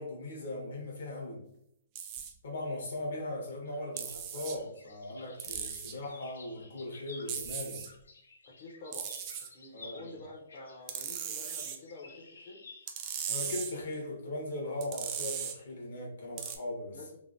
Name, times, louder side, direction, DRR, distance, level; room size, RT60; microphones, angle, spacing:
voice 1, 0.0-1.4 2.4-7.8 9.7-10.1 13.3-17.2, left 1 dB, 70° left, -2 dB, 1.2 m, -39 dB
magnetic balls, 2.0-2.3 4.0-4.6 5.4-6.0 7.3-7.9 8.9-9.5 10.9-11.8 12.9-13.7 14.8-15.6 16.4-16.6, right 8 dB, 30° right, 0.3 m, -37 dB
sound 1, 3.6-13.5, left 3 dB, 85° left, 0.5 m, -54 dB
voice 2, 8.4-9.2 9.5-12.7 16.9-17.2, left 2 dB, 40° left, -3 dB, 0.5 m, -48 dB
3.3 x 2.1 x 2.5 m, 0.74 s
hypercardioid pair, 155°, 0 cm